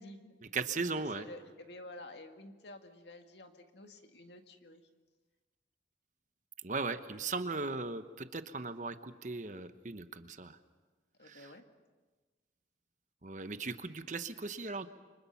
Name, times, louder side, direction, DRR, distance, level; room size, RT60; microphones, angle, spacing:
voice 1, 0.0-4.8 11.2-11.6, left 1 dB, 75° left, 5 dB, 2.0 m, -51 dB
voice 2, 0.5-1.2 6.6-10.6 11.3-11.4 13.2-14.9, right 4 dB, 45° right, 10 dB, 1.0 m, -37 dB
29.0 x 24.5 x 5.8 m, 1.3 s
head